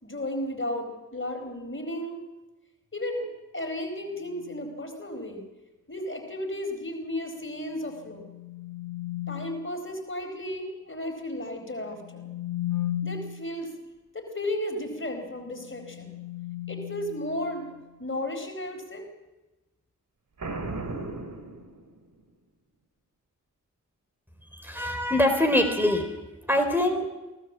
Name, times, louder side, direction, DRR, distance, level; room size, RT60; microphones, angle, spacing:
voice 1, 0.0-2.2 2.9-3.3 3.5-5.4 5.9-8.2 9.3-12.3 13.0-13.7 14.1-16.1 16.7-17.7 18.0-19.1, left 1 dB, 40° left, 4 dB, 4.4 m, -34 dB
sound 1, 4.3-4.7 7.8-9.7 11.8-13.5 15.5-17.8, left 12 dB, 80° left, 1.5 m, -36 dB
Boom, 20.4-22.2, right 2 dB, 80° right, 2.7 m, -35 dB
voice 2, 24.5-26.2 26.5-27.1, left 1 dB, 5° right, 5 dB, 4.1 m, -24 dB
23.5 x 16.5 x 7.6 m, 1.1 s
cardioid pair, 40°, 32 cm